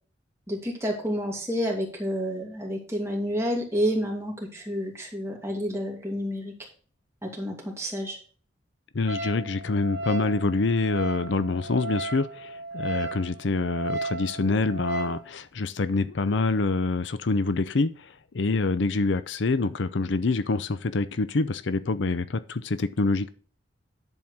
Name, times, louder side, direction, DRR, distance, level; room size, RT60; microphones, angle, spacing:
voice 1, 0.5-6.7 7.2-8.2, equal, 15° right, 2.6 m, -29 dB
voice 2, 8.9-23.3, left 3 dB, 70° left, 0.6 m, -26 dB
Wind instrument woodwind instrument, 9.1-15.2, right 2 dB, 75° right, 2.1 m, -35 dB
10.5 x 4.4 x 6.4 m
head